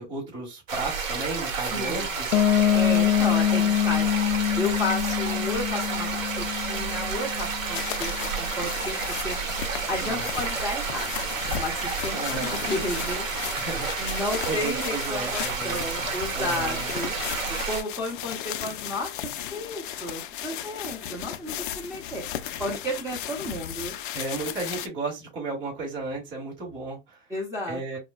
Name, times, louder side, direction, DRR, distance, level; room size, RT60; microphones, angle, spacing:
voice 1, 0.0-2.5 10.0-10.5 12.1-12.7 13.6-17.0 24.1-27.3 27.7-28.0, right 3 dB, 30° right, 2.3 m, -34 dB
sound 1, 0.7-17.8, right 5 dB, 80° right, 1.3 m, -31 dB
voice 2, 1.7-2.1 2.7-4.1 4.6-9.4 9.9-11.3 11.6-13.3 14.0-17.1 17.5-19.1 19.5-22.2 22.6-23.9 27.3-28.0, left 1 dB, 5° right, 0.7 m, -32 dB
Piano, 2.3-8.0, left 10 dB, 90° left, 0.6 m, -25 dB
sound 2, 7.7-24.9, left 11 dB, 40° left, 0.4 m, -36 dB
4.8 x 2.2 x 2.3 m
hypercardioid pair, 125°, 39 cm